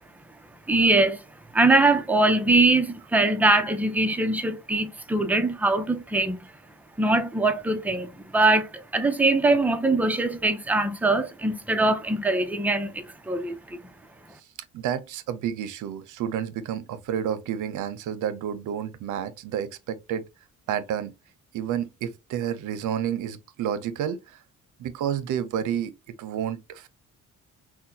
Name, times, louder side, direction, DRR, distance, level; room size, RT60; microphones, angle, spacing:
voice 1, 0.7-1.2 1.5-6.4 7.0-13.8, right 2 dB, 5° right, 0.6 m, -22 dB
voice 2, 14.7-20.3 20.7-21.1 21.5-24.4 24.8-26.9, right 9 dB, 80° right, 0.6 m, -30 dB
5.6 x 2.2 x 2.7 m
cardioid pair, 90°, 30 cm